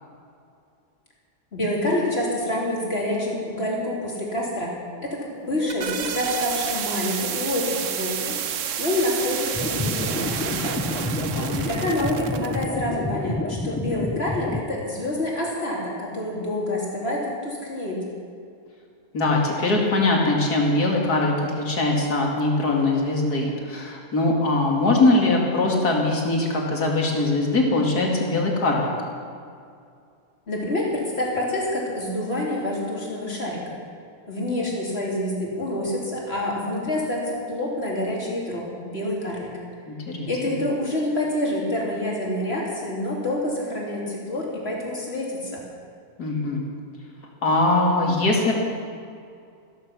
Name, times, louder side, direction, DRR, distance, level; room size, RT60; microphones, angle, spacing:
voice 1, 1.5-8.3 8.8-10.8 11.5-18.0 30.5-33.8 34.3-39.5 40.3-45.6, left 1 dB, 40° left, -4 dB, 3.8 m, -27 dB
sound 1, 5.4-12.7, right 8 dB, 60° right, 1.0 m, -30 dB
sound 2, 9.5-14.6, left 2 dB, 15° left, 0.4 m, -29 dB
voice 2, 11.0-11.7 19.1-28.9 39.9-40.5 46.2-46.6 47.4-48.5, left 2 dB, 85° left, -1 dB, 3.0 m, -22 dB
15.0 x 14.0 x 6.2 m, 2.3 s
omnidirectional pair, 1.6 m